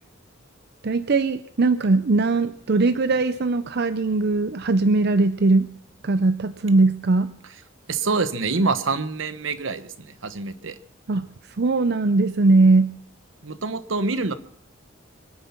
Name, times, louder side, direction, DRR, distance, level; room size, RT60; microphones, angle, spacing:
voice 1, 0.8-5.7 6.0-7.3 11.1-11.3 11.6-12.9, right 3 dB, 55° right, 12 dB, 0.6 m, -20 dB
voice 2, 7.9-10.8 13.4-14.3, right 3 dB, 80° right, 13 dB, 1.0 m, -26 dB
24.0 x 9.4 x 5.9 m, 0.64 s
head